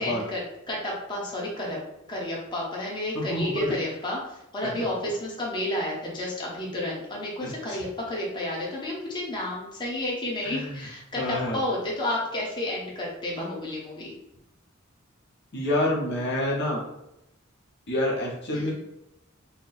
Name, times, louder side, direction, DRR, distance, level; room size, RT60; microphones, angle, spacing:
voice 1, 0.0-1.8 2.1-14.1 18.5-18.7, left 1 dB, 20° left, -4 dB, 0.9 m, -31 dB
voice 2, 3.1-3.7 4.6-4.7 7.4-7.8 10.4-10.7 11.2-11.6 15.5-16.8 17.9-18.7, left 1 dB, 55° left, -4 dB, 0.8 m, -28 dB
4.2 x 2.0 x 4.0 m, 0.84 s
head